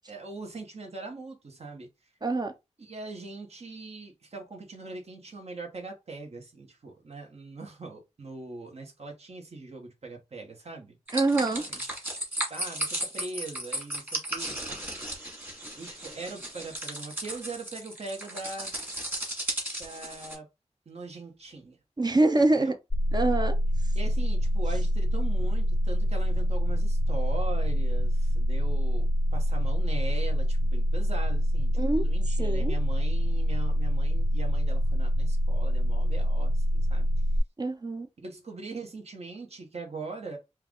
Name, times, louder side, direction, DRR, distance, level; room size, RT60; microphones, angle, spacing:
voice 1, 0.1-1.9 2.8-11.0 11.3-11.8 12.5-15.1 15.8-18.7 19.8-20.5 20.8-21.8 22.4-22.8 23.9-36.6 36.9-37.1 38.2-40.4, right 3 dB, 60° right, 1.3 m, -41 dB
voice 2, 2.2-2.5 11.1-11.6 22.0-22.7 23.1-23.6 31.8-32.1 32.4-32.8 37.6-38.1, right 2 dB, 35° right, 0.6 m, -25 dB
sound 1, 11.1-20.4, right 1 dB, 15° right, 1.8 m, -35 dB
sound 2, 22.9-37.4, equal, 15° left, 0.3 m, -25 dB
4.6 x 2.5 x 3.7 m
wide cardioid pair, 100°, 12 cm